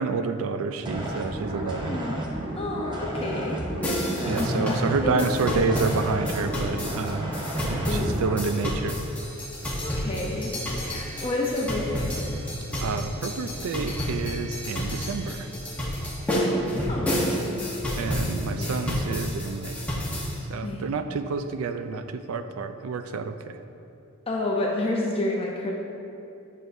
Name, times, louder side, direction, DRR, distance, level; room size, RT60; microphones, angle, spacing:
voice 1, 0.0-2.0 4.3-7.3 7.6-9.0 12.8-15.5 18.0-19.8 20.5-23.6, right 4 dB, 80° right, 9 dB, 0.4 m, -29 dB
sound 1, 0.8-8.4, right 1 dB, 20° right, 0.7 m, -32 dB
voice 2, 1.8-2.2 2.6-3.6 4.2-4.4 5.0-6.0 7.4-8.4 9.8-12.2 16.9-17.5 18.0-18.1 18.6-18.8 20.6-20.9 24.3-25.7, left 1 dB, 25° left, -2 dB, 0.6 m, -30 dB
sound 2, 3.8-20.4, equal, 5° left, 1.0 m, -30 dB
8.9 x 6.2 x 2.6 m, 2.7 s
head